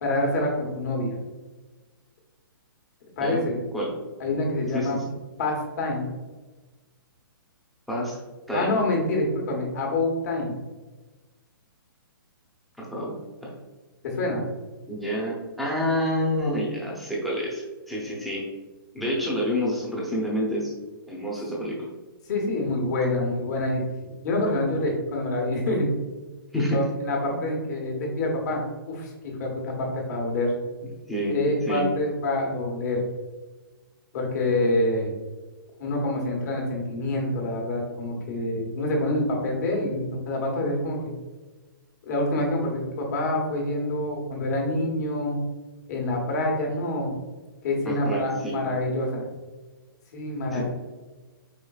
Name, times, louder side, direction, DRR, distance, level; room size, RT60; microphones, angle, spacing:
voice 1, 0.0-1.2 3.2-3.6 4.2-5.0 5.4-6.1 8.5-10.6 14.0-14.4 22.3-23.8 24.2-25.9 26.7-28.6 28.9-30.5 31.3-33.0 34.1-35.1 35.8-41.0 42.0-45.4 45.9-47.1 47.6-49.3 50.1-50.6, left 2 dB, 45° left, 0 dB, 1.3 m, -26 dB
voice 2, 12.8-13.1 13.4-13.5 14.9-18.5 18.9-20.7 21.1-21.9 26.5-26.8 27.3-27.4 31.1-31.4 31.6-31.9 47.8-48.6 50.5-50.6, equal, ahead, -5 dB, 0.7 m, -28 dB
4.9 x 3.8 x 2.3 m, 1.2 s
hypercardioid pair, 160°, 12 cm